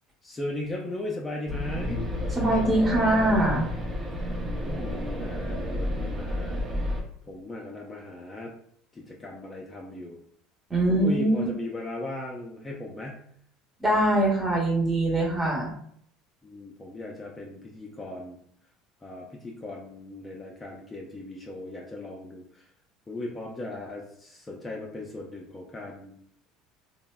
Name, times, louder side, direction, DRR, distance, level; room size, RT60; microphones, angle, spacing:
voice 1, 0.2-2.0 4.4-6.6 7.3-8.5 8.9-10.2 10.9-13.3 16.4-18.4 19.0-22.7 23.1-26.1, left 2 dB, 20° left, -2 dB, 0.5 m, -37 dB
sound 1, 1.5-7.0, left 1 dB, 45° right, 0.6 m, -31 dB
voice 2, 2.3-3.7 10.7-11.5 13.8-15.7, right 1 dB, 15° right, -2 dB, 1.0 m, -23 dB
3.1 x 2.0 x 2.2 m, 0.65 s
supercardioid pair, 90°, 0 cm